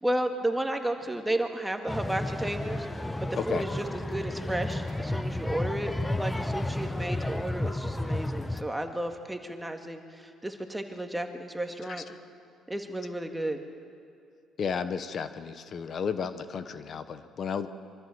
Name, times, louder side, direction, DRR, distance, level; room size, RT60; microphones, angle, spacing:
voice 1, 0.0-2.9 3.2-5.9 6.2-12.0 12.7-13.6, right 1 dB, 10° right, 5 dB, 2.0 m, -33 dB
sound 1, 1.9-8.6, left 1 dB, 10° left, 1.0 m, -32 dB
voice 2, 11.9-12.2 14.6-17.7, left 6 dB, 55° left, 11 dB, 1.0 m, -33 dB
24.0 x 14.0 x 7.9 m, 2.4 s
supercardioid pair, 75°, 0 cm